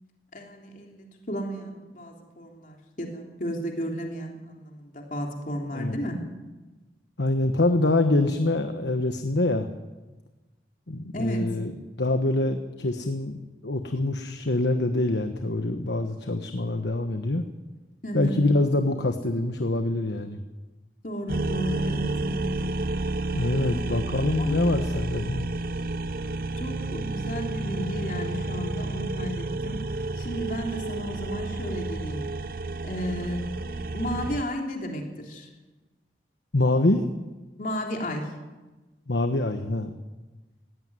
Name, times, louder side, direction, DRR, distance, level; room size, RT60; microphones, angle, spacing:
voice 1, 0.3-6.2 11.1-11.5 18.0-18.4 21.0-22.5 23.6-23.8 24.4-24.6 26.6-29.8 30.2-32.3 32.8-33.4 33.9-35.5 37.6-38.3, equal, 45° left, 1 dB, 3.4 m, -33 dB
voice 2, 7.2-9.7 10.9-11.7 12.0-17.4 18.1-20.4 23.3-25.5 36.5-37.0 39.1-39.9, left 2 dB, 80° left, 7 dB, 1.2 m, -25 dB
sound 1, 21.3-34.4, right 2 dB, 50° right, 0.7 m, -31 dB
17.5 x 17.0 x 9.6 m, 1.2 s
head